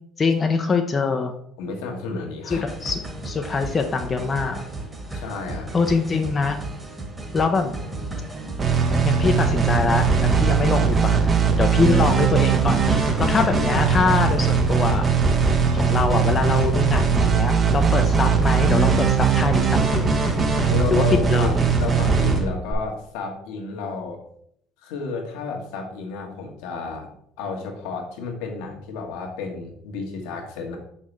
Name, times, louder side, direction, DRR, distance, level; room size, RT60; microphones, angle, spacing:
voice 1, 0.2-1.3 2.5-4.6 5.1-5.2 5.7-6.6 7.3-7.7 9.0-11.3 11.6-15.1 15.7-20.2 20.9-21.0 21.3-21.7, left 4 dB, 35° left, 5 dB, 0.7 m, -24 dB
voice 2, 1.6-2.7 5.1-5.7 20.6-24.2 24.8-27.1 27.4-30.8, left 4 dB, 75° left, 1 dB, 1.4 m, -32 dB
sound 1, 2.5-22.4, right 2 dB, 20° right, 1.8 m, -35 dB
sound 2, 8.6-22.7, right 5 dB, 35° right, 1.2 m, -20 dB
5.9 x 5.6 x 3.3 m, 0.70 s
hypercardioid pair, 70°, 0 cm